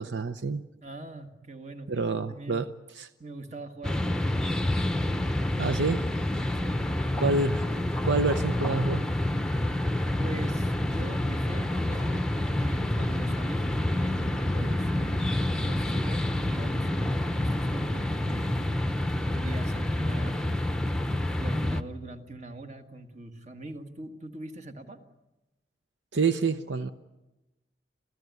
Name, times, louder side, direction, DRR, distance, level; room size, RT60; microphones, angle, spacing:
voice 1, 0.0-0.7 1.9-2.7 3.0-3.1 5.6-6.2 7.2-7.6 8.0-9.1 26.1-26.9, right 3 dB, 80° right, 11 dB, 0.7 m, -27 dB
voice 2, 0.8-2.7 3.2-4.4 6.6-6.9 10.2-18.8 19.1-25.0, right 2 dB, 40° right, 7 dB, 1.6 m, -43 dB
sound 1, 3.8-21.8, left 1 dB, 5° left, 0.8 m, -28 dB
28.0 x 15.5 x 9.4 m, 1.0 s
head